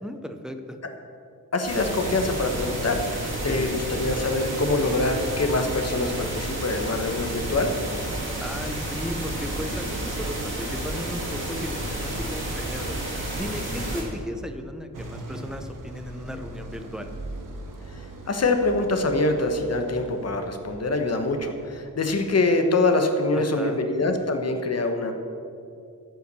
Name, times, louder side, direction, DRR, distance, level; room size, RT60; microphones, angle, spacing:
voice 1, 0.0-0.8 3.5-3.8 8.4-17.1 23.3-23.8, equal, ahead, 6 dB, 0.6 m, -36 dB
voice 2, 1.5-3.0 3.4-7.7 17.9-25.1, left 2 dB, 45° left, 5 dB, 1.1 m, -24 dB
sound 1, 1.6-14.0, right 1 dB, 35° right, 2.6 m, -31 dB
sound 2, 14.9-21.9, right 1 dB, 65° right, 1.4 m, -41 dB
15.0 x 5.8 x 6.8 m, 2.5 s
wide cardioid pair, 175°, 35 cm